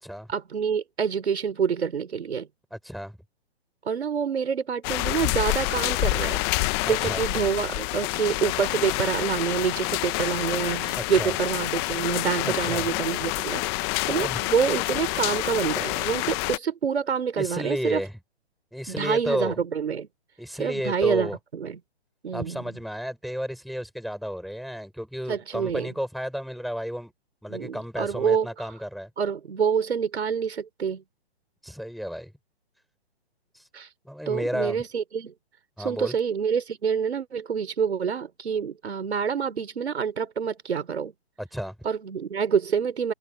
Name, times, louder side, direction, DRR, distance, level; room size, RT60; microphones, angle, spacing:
voice 1, 0.3-2.5 3.8-18.0 18.9-20.1 20.6-21.8 22.2-22.6 25.3-25.9 27.5-28.5 29.2-31.0 33.7-33.9 34.3-35.3 35.8-41.1 41.8-43.1, right 6 dB, 80° right, 4.0 m, -27 dB
voice 2, 2.7-3.2 6.8-7.2 10.9-11.3 12.4-12.9 14.1-14.4 17.4-18.1 18.7-19.6 20.4-21.4 22.3-27.1 27.4-29.1 31.6-32.3 33.5-33.6 34.0-34.8 35.8-36.1 41.4-41.7, equal, ahead, 6.8 m, -32 dB
sound 1, 4.8-16.6, left 24 dB, 25° left, 0.9 m, -28 dB
hypercardioid pair, 145°, 32 cm